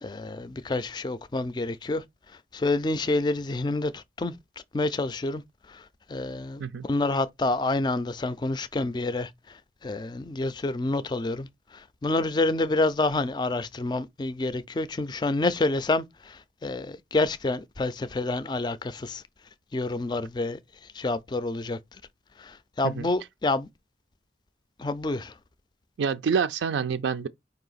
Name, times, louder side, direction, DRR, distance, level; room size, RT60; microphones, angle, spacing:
voice 1, 0.0-2.0 2.5-4.4 4.7-5.4 5.7-19.2 19.7-20.6 20.9-22.0 22.4-23.7 24.8-25.3, left 2 dB, 25° left, 0.3 m, -28 dB
voice 2, 26.0-27.3, right 6 dB, 90° right, 0.4 m, -27 dB
4.7 x 2.8 x 3.9 m
head